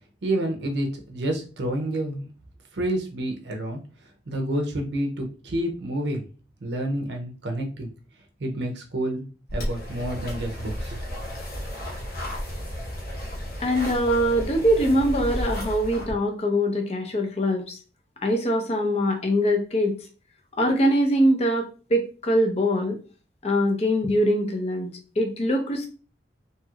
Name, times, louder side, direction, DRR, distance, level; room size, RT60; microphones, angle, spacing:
voice 1, 0.2-2.3 2.7-3.8 4.3-6.2 6.6-7.9 8.4-9.2 9.5-11.0, right 1 dB, 65° right, 3 dB, 0.6 m, -29 dB
sound 1, 9.5-16.1, equal, 50° left, 1.0 m, -33 dB
voice 2, 13.6-17.8 18.2-19.9 20.6-23.0 23.4-25.9, equal, 35° left, 3 dB, 0.6 m, -23 dB
2.9 x 2.8 x 2.3 m, 0.36 s
head